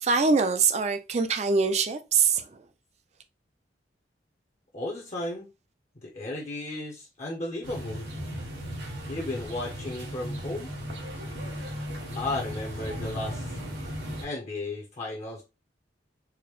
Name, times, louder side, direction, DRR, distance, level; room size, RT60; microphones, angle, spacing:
voice 1, 0.0-2.6, right 5 dB, 40° right, 0.4 m, -24 dB
voice 2, 4.7-5.5 6.0-8.1 9.1-10.7 12.1-13.6 14.2-15.4, left 2 dB, 40° left, 0.7 m, -34 dB
sound 1, 7.6-14.2, equal, 85° right, 1.4 m, -36 dB
4.7 x 2.1 x 3.0 m
head